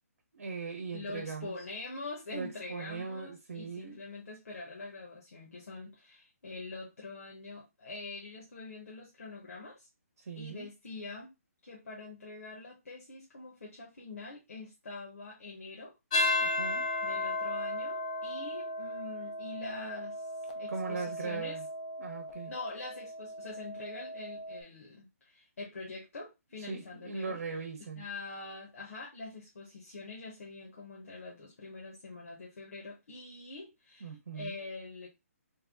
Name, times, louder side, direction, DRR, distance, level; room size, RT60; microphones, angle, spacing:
voice 1, 0.3-1.5 2.3-4.0 10.2-10.7 16.4-16.8 20.7-21.6 22.0-22.5 26.7-28.0 34.0-34.6, right 5 dB, 65° right, 0.9 m, -39 dB
voice 2, 0.9-9.9 10.3-11.3 11.6-16.0 17.0-20.2 20.6-21.6 22.5-27.4 27.9-35.1, left 3 dB, 65° left, 1.1 m, -44 dB
sound 1, 16.1-24.6, left 2 dB, 30° left, 0.5 m, -35 dB
3.4 x 2.2 x 3.5 m
hypercardioid pair, 175°, 8 cm